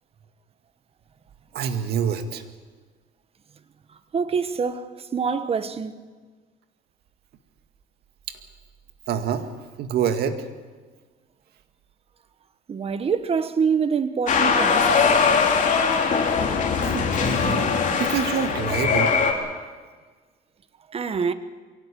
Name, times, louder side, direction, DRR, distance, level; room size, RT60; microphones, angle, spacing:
voice 1, 1.5-2.4 9.1-9.5 9.8-10.5 16.8-19.1, right 7 dB, 70° right, 2.1 m, -26 dB
voice 2, 4.1-5.9 12.7-14.9 20.9-21.3, right 6 dB, 35° right, 1.4 m, -25 dB
sound 1, 14.3-19.3, left 5 dB, 50° left, 3.5 m, -21 dB
23.5 x 17.5 x 8.6 m
cardioid pair, 110°, 17 cm